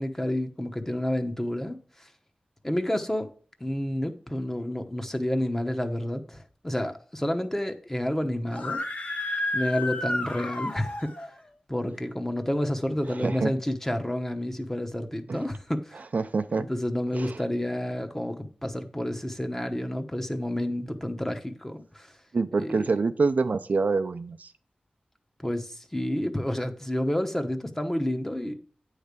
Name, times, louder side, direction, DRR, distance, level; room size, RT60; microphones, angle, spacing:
voice 1, 0.0-2.1 2.6-3.3 3.6-8.8 9.5-11.1 11.7-16.0 16.6-22.1 22.6-22.8 25.4-28.5, left 1 dB, 15° left, 0.9 m, -30 dB
Screaming, 8.5-11.3, left 2 dB, 65° left, 1.2 m, -31 dB
voice 2, 13.2-13.5 15.3-15.4 16.1-16.7 17.1-17.4 22.3-24.5, right 4 dB, 70° right, 0.5 m, -26 dB
9.2 x 3.3 x 6.7 m
wide cardioid pair, 80°, 3 cm